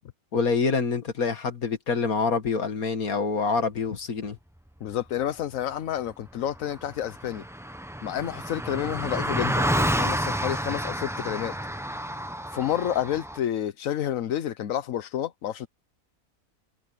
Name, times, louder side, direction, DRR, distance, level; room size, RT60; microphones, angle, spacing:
voice 1, 0.3-4.4, left 4 dB, 85° left, 2.4 m, -26 dB
voice 2, 4.8-7.4 8.0-11.6 12.5-15.7, left 10 dB, 70° left, 1.2 m, -29 dB
Car passing by, 6.3-6.4 6.5-13.4, equal, 5° right, 0.5 m, -30 dB
omnidirectional pair, 1.5 m